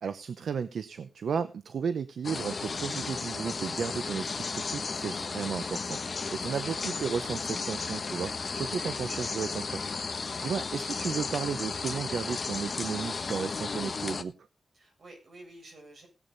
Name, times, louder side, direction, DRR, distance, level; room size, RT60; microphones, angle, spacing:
voice 1, 0.0-9.9 10.1-14.3, right 6 dB, 90° right, 12 dB, 0.8 m, -34 dB
sound 1, 2.2-14.2, left 4 dB, 55° left, 1.3 m, -34 dB
voice 2, 14.7-16.1, right 1 dB, 70° right, 3 dB, 7.6 m, -51 dB
17.5 x 8.8 x 4.1 m, 0.29 s
wide cardioid pair, 80°, 0 cm